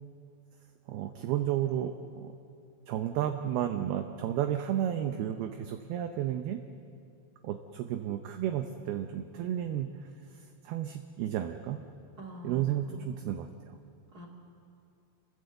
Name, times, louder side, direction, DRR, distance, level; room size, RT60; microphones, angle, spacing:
voice 1, 0.9-2.3 2.9-6.6 7.4-11.8 12.4-13.8, right 11 dB, 75° right, 6 dB, 2.4 m, -32 dB
voice 2, 12.2-13.2 14.1-14.3, right 2 dB, 40° right, 2 dB, 1.4 m, -45 dB
27.0 x 19.5 x 8.0 m, 2.4 s
omnidirectional pair, 5.3 m